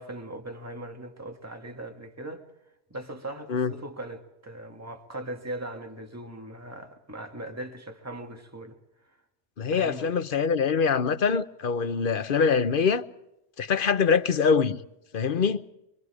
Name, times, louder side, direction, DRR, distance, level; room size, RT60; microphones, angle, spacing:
voice 1, 0.0-2.5 2.9-9.2 9.7-10.2, right 1 dB, 15° right, 1.9 m, -39 dB
voice 2, 9.6-13.0 13.6-14.8 15.1-15.6, left 6 dB, 55° left, 1.0 m, -24 dB
24.5 x 23.5 x 4.9 m
omnidirectional pair, 1.1 m